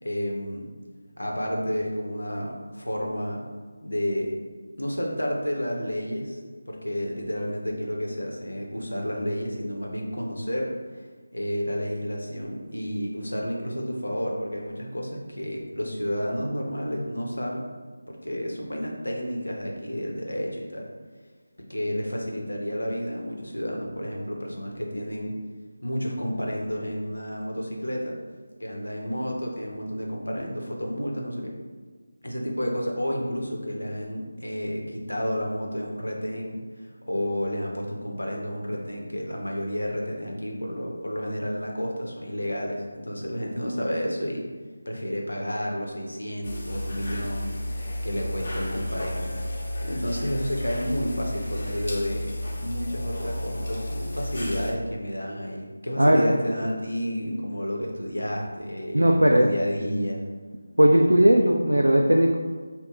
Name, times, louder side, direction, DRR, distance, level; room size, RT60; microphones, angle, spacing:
voice 1, 0.0-0.7 1.2-3.4 3.8-4.3 4.8-6.4 6.7-11.1 11.3-17.7 18.1-20.9 21.7-25.3 25.8-28.2 28.6-31.5 32.2-44.4 44.9-49.3 49.8-60.2, equal, 85° left, 0 dB, 0.7 m, -31 dB
sound 1, 46.4-54.7, left 1 dB, 50° left, 0.6 m, -32 dB
voice 2, 58.9-59.5 60.8-62.4, right 1 dB, 85° right, 0 dB, 0.3 m, -18 dB
2.9 x 2.2 x 3.7 m, 1.4 s
figure-of-eight pair, 160°, 0 cm